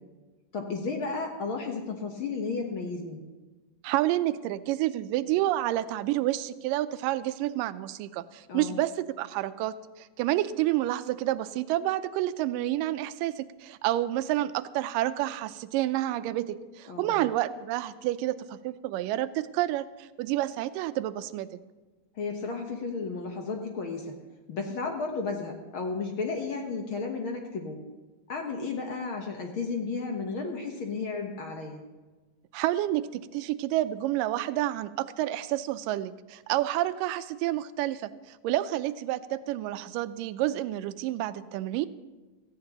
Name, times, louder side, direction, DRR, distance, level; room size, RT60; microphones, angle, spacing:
voice 1, 0.5-3.2 8.5-8.8 16.9-17.3 22.1-24.2 24.5-27.8 28.3-31.8, left 4 dB, 65° left, 2 dB, 1.3 m, -33 dB
voice 2, 3.8-21.5 32.5-41.9, right 14 dB, 90° right, 13 dB, 2.2 m, -29 dB
17.0 x 14.5 x 2.9 m, 1.2 s
omnidirectional pair, 3.8 m